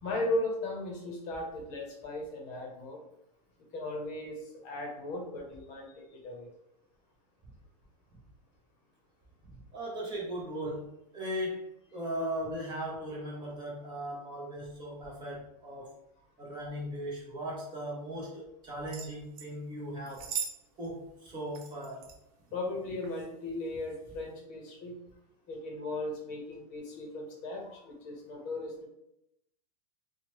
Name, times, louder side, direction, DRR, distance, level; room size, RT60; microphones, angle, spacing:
voice 1, 0.0-3.0 3.7-4.4 4.6-6.5 22.5-25.0 25.5-28.9, left 2 dB, 40° left, 0 dB, 0.8 m, -37 dB
voice 2, 9.4-15.9 16.4-20.3 20.8-22.1, equal, 20° right, -4 dB, 0.7 m, -38 dB
sound 1, 18.9-19.5 20.1-20.6 20.8-20.9 21.5-22.2 23.0-23.3 23.8-24.0, right 7 dB, 60° right, 0.5 m, -39 dB
2.8 x 2.1 x 3.0 m, 0.83 s
supercardioid pair, 145°, 21 cm